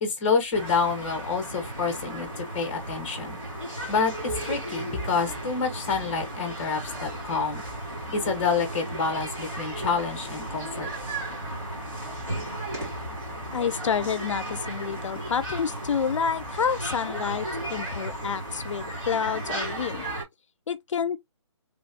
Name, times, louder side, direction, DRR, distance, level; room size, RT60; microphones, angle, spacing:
voice 1, 0.0-3.4 3.9-7.6 8.1-10.9, left 5 dB, 25° left, 1.2 m, -28 dB
sound 1, 0.5-20.2, right 1 dB, 15° right, 1.7 m, -35 dB
voice 2, 13.5-20.0 20.7-21.2, left 7 dB, 80° left, 0.4 m, -29 dB
3.4 x 3.1 x 2.7 m
hypercardioid pair, 165°, 16 cm